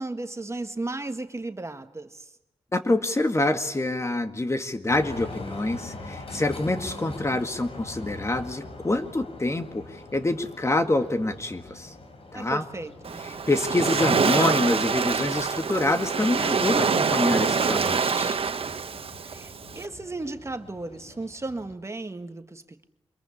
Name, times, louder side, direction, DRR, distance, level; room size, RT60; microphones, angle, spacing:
voice 1, 0.0-2.3 12.3-13.2 19.2-22.9, right 2 dB, 30° right, 8 dB, 1.6 m, -35 dB
voice 2, 2.7-11.9 12.3-12.7 13.5-18.4, left 2 dB, 30° left, 8 dB, 2.0 m, -26 dB
sound 1, 4.9-21.7, left 2 dB, 75° left, 4.9 m, -44 dB
Waves surf, 13.1-19.9, right 5 dB, 75° right, 1.4 m, -25 dB
24.5 x 22.0 x 9.9 m, 0.84 s
wide cardioid pair, 80°, 10 cm